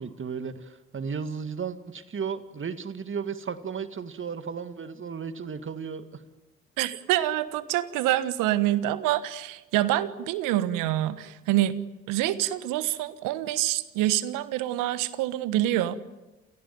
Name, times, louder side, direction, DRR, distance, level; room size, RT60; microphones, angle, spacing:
voice 1, 0.0-6.2, right 6 dB, 40° right, 10 dB, 1.9 m, -34 dB
voice 2, 6.8-11.8 12.1-16.0, right 14 dB, 70° right, 14 dB, 1.4 m, -26 dB
28.0 x 17.5 x 9.5 m, 1.1 s
hypercardioid pair, 50°, 33 cm